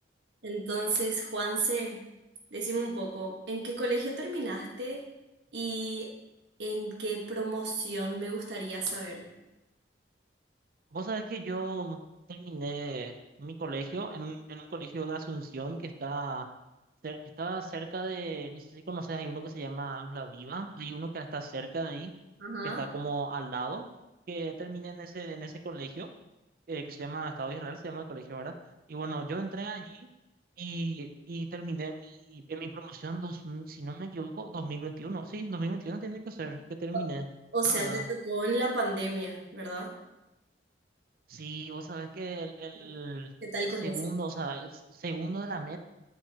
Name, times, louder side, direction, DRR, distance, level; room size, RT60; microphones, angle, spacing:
voice 1, 0.4-2.0 2.5-5.0 5.5-6.1 6.6-9.2 22.4-22.8 37.5-39.9 43.4-44.0, right 2 dB, 75° right, -2 dB, 1.4 m, -32 dB
voice 2, 10.9-12.0 12.3-13.1 13.4-16.5 17.0-22.1 22.8-23.9 24.3-26.1 26.7-28.5 28.9-30.1 30.6-37.3 37.7-38.0 41.3-43.3 43.8-45.8, right 3 dB, 50° right, 6 dB, 0.5 m, -36 dB
9.5 x 4.5 x 2.8 m, 0.98 s
head